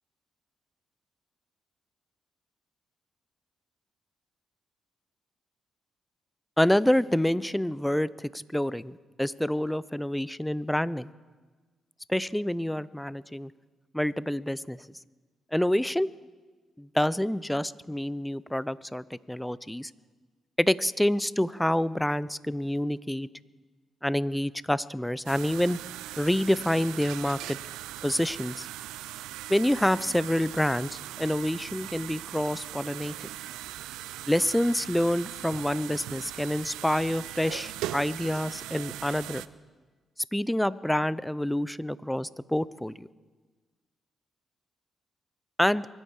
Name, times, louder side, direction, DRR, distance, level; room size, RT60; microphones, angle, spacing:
voice 1, 6.6-11.1 12.1-13.5 13.9-14.8 15.5-16.1 16.8-19.9 20.6-23.3 24.0-25.8 26.2-27.6 28.0-28.7 29.5-33.3 34.3-39.4 40.3-43.1 45.6-45.9, left 1 dB, 5° left, 18 dB, 0.6 m, -27 dB
sound 1, 25.3-39.5, right 14 dB, 85° right, 0.4 m, -40 dB
24.0 x 10.0 x 4.8 m, 1.4 s
supercardioid pair, 55°, 0 cm